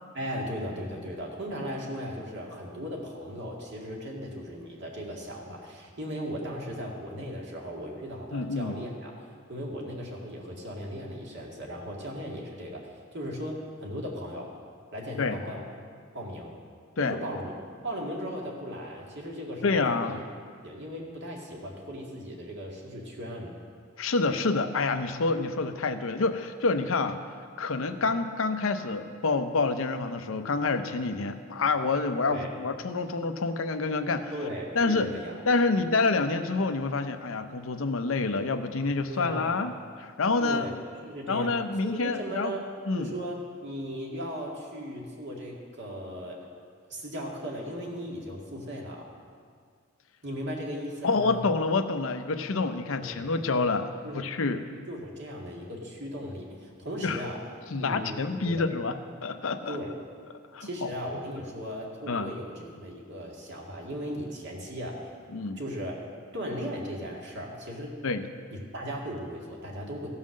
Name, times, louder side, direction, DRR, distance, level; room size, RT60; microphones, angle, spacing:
voice 1, 0.1-9.1 9.5-14.5 14.9-15.6 16.1-16.5 17.0-20.2 20.6-23.5 32.3-32.5 34.3-35.4 35.7-35.8 39.1-39.6 40.4-40.7 41.0-42.7 42.9-46.5 46.9-49.1 50.2-51.5 53.0-53.4 54.0-54.4 54.9-57.4 57.8-58.6 59.7-59.9 60.6-65.1 65.6-66.0 66.3-67.9 68.5-70.1, equal, 60° right, -1 dB, 2.0 m, -37 dB
voice 2, 8.3-8.7 15.2-15.4 17.0-17.1 19.6-20.2 24.0-27.2 27.6-34.3 34.7-35.1 35.5-40.7 41.3-42.5 42.9-43.1 51.0-53.9 54.1-54.7 57.0-57.2 57.7-59.8 60.5-60.9 62.1-62.3 65.3-65.6 68.0-68.2, left 3 dB, 75° left, 8 dB, 0.6 m, -27 dB
15.5 x 5.6 x 6.4 m, 2.1 s
head